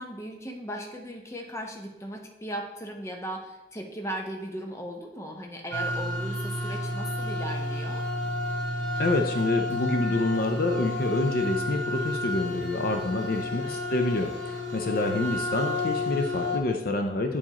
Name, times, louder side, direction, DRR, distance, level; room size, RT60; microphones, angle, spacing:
voice 1, 0.0-8.1 13.1-13.3, equal, 15° left, 2 dB, 0.7 m, -37 dB
sound 1, 5.7-16.6, left 1 dB, 75° right, 1.0 m, -31 dB
voice 2, 9.0-17.4, left 2 dB, 50° left, 5 dB, 0.5 m, -27 dB
8.5 x 4.7 x 2.9 m, 0.97 s
head